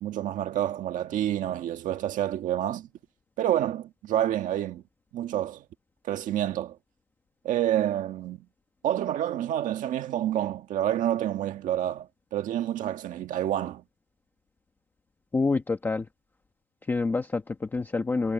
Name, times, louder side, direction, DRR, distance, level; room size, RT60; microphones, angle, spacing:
voice 1, 0.0-2.9 3.4-4.8 5.1-5.6 6.1-6.8 7.4-8.4 8.8-13.8, right 12 dB, 20° right, 1.5 m, -28 dB
voice 2, 15.3-16.1 16.9-18.3, left 3 dB, 5° left, 1.1 m, -27 dB
supercardioid pair, 170°, 37 cm